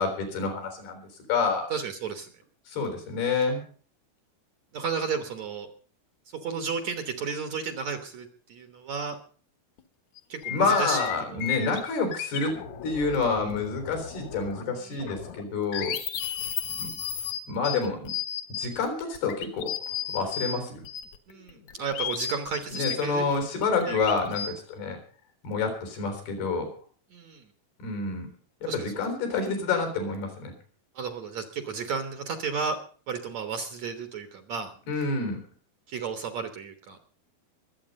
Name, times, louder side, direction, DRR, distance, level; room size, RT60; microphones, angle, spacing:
voice 1, 0.0-1.7 2.7-3.6 10.5-12.5 12.8-16.0 16.8-16.9 17.5-18.1 18.5-19.7 20.1-20.9 22.7-25.0 25.4-26.7 27.8-28.3 28.6-30.5 34.9-35.4, left 4 dB, 80° left, 5 dB, 5.7 m, -28 dB
voice 2, 1.7-2.3 4.7-5.7 6.4-9.2 10.3-11.4 14.8-15.1 21.3-23.3 23.9-24.0 27.1-27.5 28.7-28.9 31.0-32.8 33.1-34.7 35.9-37.0, right 5 dB, 60° right, 6 dB, 2.0 m, -33 dB
sound 1, 9.8-9.9 10.2-14.7 15.0-20.5 20.8-24.5, left 9 dB, 60° left, 2.3 m, -34 dB
23.0 x 8.5 x 5.3 m, 0.43 s
omnidirectional pair, 4.4 m